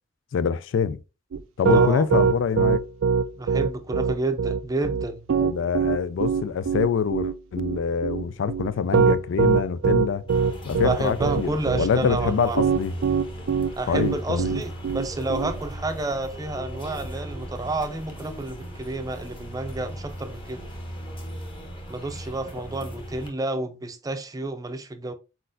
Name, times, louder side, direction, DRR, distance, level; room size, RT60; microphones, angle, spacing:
voice 1, 0.3-1.0 1.6-2.8 5.3-10.2 10.6-12.9 13.9-14.6, left 6 dB, 85° left, 0.4 m, -25 dB
Piano, 1.3-15.5, right 6 dB, 85° right, 0.4 m, -22 dB
voice 2, 1.7-2.1 3.4-5.3 10.8-12.6 13.8-20.7 21.9-25.1, right 2 dB, 20° right, 0.5 m, -30 dB
sound 1, 10.3-23.3, equal, 25° left, 1.0 m, -38 dB
4.3 x 4.2 x 2.5 m
head